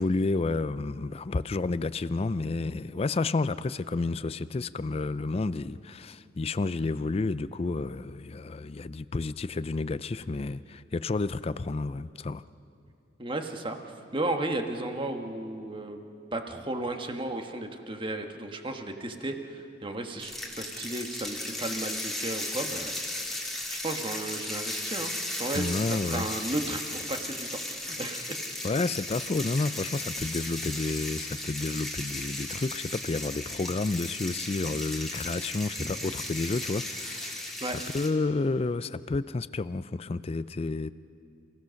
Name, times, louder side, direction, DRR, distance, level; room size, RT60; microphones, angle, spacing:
voice 1, 0.0-12.4 25.5-26.3 28.6-40.9, left 3 dB, 30° left, 15 dB, 0.4 m, -30 dB
voice 2, 13.2-13.8 14.1-16.0 16.3-23.0 23.7-28.4 35.8-35.9 37.6-37.8, right 2 dB, 25° right, 5 dB, 1.4 m, -34 dB
sound 1, 20.2-38.1, left 1 dB, ahead, 2.2 m, -36 dB
28.5 x 16.5 x 6.4 m, 2.5 s
head